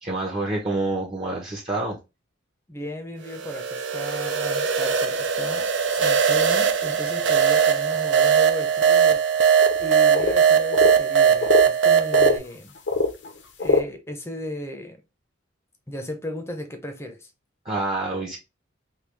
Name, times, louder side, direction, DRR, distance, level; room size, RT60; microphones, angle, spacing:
voice 1, 0.0-2.0 17.6-18.4, right 2 dB, 30° right, 0.8 m, -27 dB
voice 2, 2.7-9.5 9.8-12.8 13.6-15.0 15.9-17.3, left 1 dB, 15° left, 0.7 m, -35 dB
sound 1, 3.3-12.4, right 7 dB, 65° right, 0.5 m, -20 dB
sound 2, 5.2-5.3 5.5-5.6 5.9-6.0 6.4-6.5 7.8-7.9 8.3-8.4 9.1-9.2 9.4-9.9 10.1-11.0 11.4-12.5 12.8-13.8, left 3 dB, 65° left, 0.8 m, -24 dB
3.3 x 2.9 x 3.2 m
head